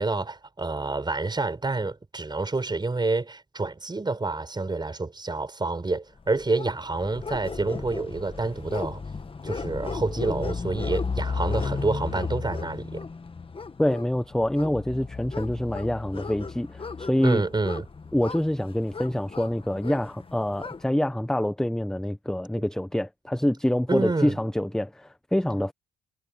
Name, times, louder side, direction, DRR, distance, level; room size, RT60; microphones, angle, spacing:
voice 1, 0.0-9.0 9.4-13.0 17.2-17.9 23.9-24.4, right 3 dB, 20° right, 5.5 m, -28 dB
sound 1, 6.3-20.8, left 4 dB, 25° left, 1.5 m, -34 dB
voice 2, 13.8-17.4 18.1-25.7, left 1 dB, 5° left, 1.0 m, -26 dB
cardioid pair, 90°, 20 cm